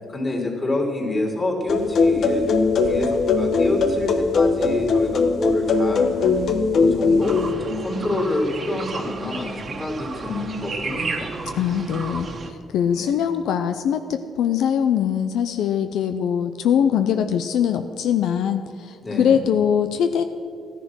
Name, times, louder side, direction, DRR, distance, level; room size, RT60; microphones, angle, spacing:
voice 1, 0.1-2.4 2.9-6.1 6.7-11.3 12.9-13.1 19.0-19.5, left 2 dB, 30° left, 0 dB, 3.4 m, -27 dB
sound 1, 1.7-7.5, left 4 dB, 60° left, 1.2 m, -20 dB
sound 2, 7.2-12.5, right 3 dB, 45° right, 1.5 m, -32 dB
voice 2, 11.5-20.2, left 8 dB, 80° left, 8 dB, 0.5 m, -22 dB
14.0 x 10.0 x 6.2 m, 2.3 s
cardioid pair, 90°, 0 cm